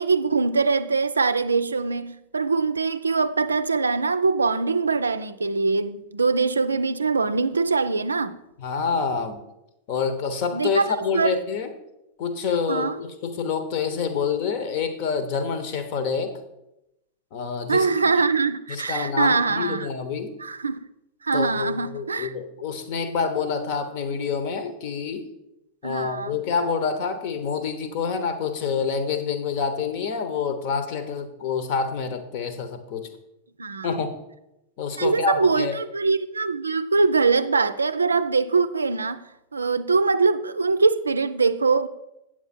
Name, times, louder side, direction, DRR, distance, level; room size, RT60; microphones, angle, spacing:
voice 1, 0.0-8.4 10.5-11.4 12.7-13.0 17.7-19.9 20.4-20.8 21.2-22.3 25.8-26.4 33.6-33.9 35.0-39.2 39.5-41.9, right 4 dB, 75° right, 0.4 m, -23 dB
voice 2, 8.6-9.4 9.9-11.7 12.2-16.4 17.3-17.9 18.7-20.3 21.3-25.3 25.8-33.1 33.8-34.1 34.8-35.7, left 5 dB, 45° left, 1.0 m, -27 dB
8.8 x 7.5 x 4.3 m
figure-of-eight pair, 90°, 0 cm